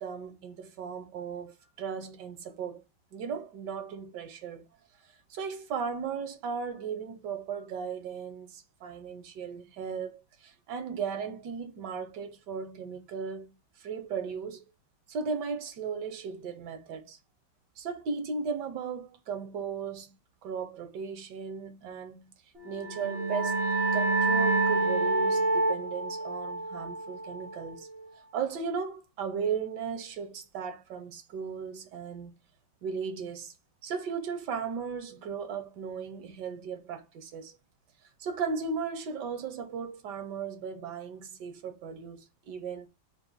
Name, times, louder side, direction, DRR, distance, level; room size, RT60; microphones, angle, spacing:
voice 1, 0.0-2.8 3.1-4.6 5.3-13.5 13.8-14.6 15.1-17.2 17.8-20.1 20.4-22.3 22.6-23.6 23.9-27.9 28.3-32.3 32.8-33.5 33.8-37.6 38.2-42.9, right 6 dB, 75° right, 1.4 m, -36 dB
sound 1, 22.7-28.1, right 3 dB, 50° right, 0.8 m, -28 dB
4.1 x 2.5 x 3.8 m
omnidirectional pair, 1.9 m